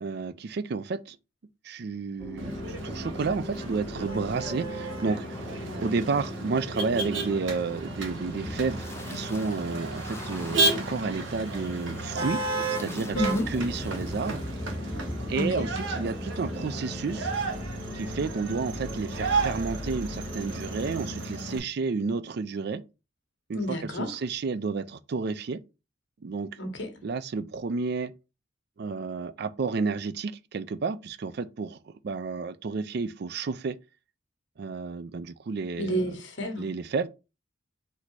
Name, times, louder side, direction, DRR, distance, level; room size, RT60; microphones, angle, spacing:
voice 1, 0.0-1.2 1.6-5.4 5.8-12.4 12.8-14.5 15.3-17.3 17.9-22.8 23.5-25.6 26.2-26.5 27.0-28.1 28.8-31.8 32.0-33.8 34.6-36.2 36.6-37.1, right 4 dB, 55° right, 0.4 m, -31 dB
sound 1, 2.2-21.1, left 1 dB, 15° left, 0.5 m, -40 dB
Motor vehicle (road), 2.4-21.6, right 2 dB, 75° right, 1.1 m, -33 dB
voice 2, 13.1-13.5 15.3-15.6 23.5-24.1 26.6-26.9 35.8-36.7, equal, 60° left, 1.2 m, -30 dB
4.1 x 2.7 x 4.6 m
head